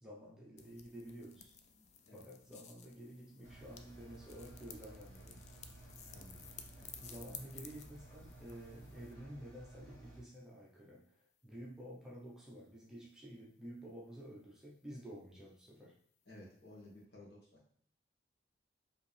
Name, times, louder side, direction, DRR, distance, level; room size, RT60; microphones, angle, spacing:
voice 1, 0.0-1.5 2.1-5.4 7.0-16.0, equal, 5° right, -5 dB, 0.8 m, -51 dB
sound 1, 0.6-9.2, left 7 dB, 35° left, 0.4 m, -55 dB
Engine, 3.4-10.2, right 2 dB, 15° left, 1.3 m, -55 dB
voice 2, 6.1-6.5 16.3-17.6, left 1 dB, 55° left, -3 dB, 1.4 m, -55 dB
4.9 x 3.0 x 3.3 m, 0.62 s
head